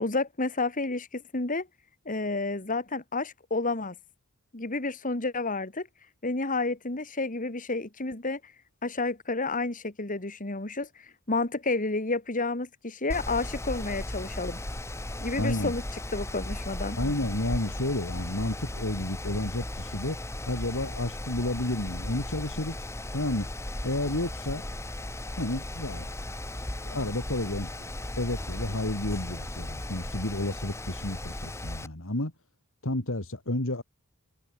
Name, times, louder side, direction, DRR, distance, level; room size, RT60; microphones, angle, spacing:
voice 1, 0.0-1.7 2.1-4.0 4.5-5.9 6.2-8.4 8.8-10.9 11.3-14.6 15.2-15.8 16.1-17.0, left 3 dB, 35° left, 2.2 m, -30 dB
Mechanical fan, 13.1-31.9, left 1 dB, 10° left, 1.0 m, -36 dB
voice 2, 15.4-15.7 17.0-20.2 20.5-22.9 23.1-23.5 23.8-24.6 25.4-26.1 26.8-27.7 28.2-32.3 32.8-33.8, left 1 dB, 65° left, 2.9 m, -31 dB
head